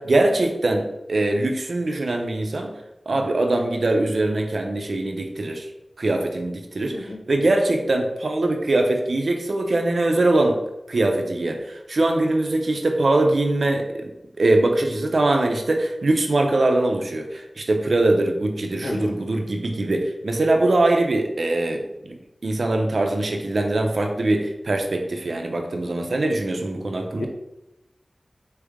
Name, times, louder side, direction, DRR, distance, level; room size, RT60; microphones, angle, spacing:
voice 1, 0.0-2.7 3.1-5.7 6.0-10.6 10.9-14.1 14.4-27.3, right 2 dB, 75° right, 3 dB, 0.6 m, -22 dB
voice 2, 18.8-19.1 27.1-27.3, left 2 dB, 80° left, 3 dB, 0.7 m, -30 dB
4.3 x 3.3 x 3.5 m, 0.89 s
wide cardioid pair, 80°, 0 cm